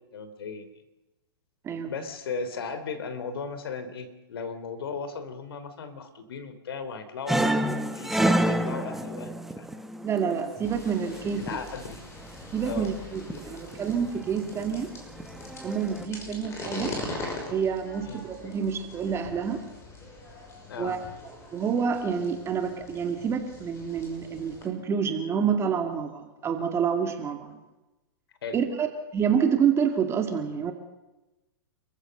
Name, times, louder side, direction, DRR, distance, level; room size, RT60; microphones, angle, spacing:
voice 1, 0.1-0.7 1.9-7.5 7.9-9.8 11.3-12.0 12.6-12.9 18.1-18.2 20.7-21.0 28.4-28.6, left 5 dB, 75° left, 11 dB, 3.5 m, -36 dB
sound 1, 7.3-10.7 11.0-11.6 12.2-12.7 13.3-13.9 14.3-14.6 15.0-16.1, right 1 dB, ahead, 1.1 m, -28 dB
voice 2, 10.0-11.5 12.5-14.9 15.6-17.0 17.5-19.6 20.8-21.0 21.5-27.6 28.5-28.9 29.1-30.7, right 7 dB, 20° right, 5 dB, 2.3 m, -28 dB
sound 2, 10.6-24.7, left 2 dB, 20° left, 6.1 m, -42 dB
28.5 x 15.0 x 6.7 m, 1.0 s
hypercardioid pair, 130°, 13 cm